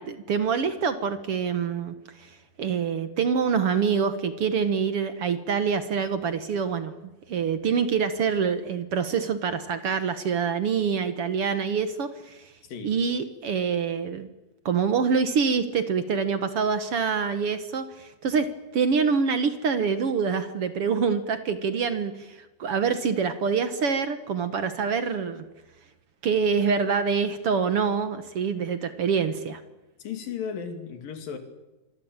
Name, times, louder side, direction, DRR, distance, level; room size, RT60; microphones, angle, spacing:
voice 1, 0.0-2.3 2.6-6.9 7.3-12.5 12.8-14.3 14.6-25.4 26.2-29.6, right 6 dB, 55° right, 11 dB, 1.6 m, -26 dB
voice 2, 12.6-12.9 30.0-31.4, left 7 dB, 70° left, 7 dB, 4.4 m, -35 dB
26.5 x 22.5 x 8.9 m, 1.0 s
omnidirectional pair, 4.2 m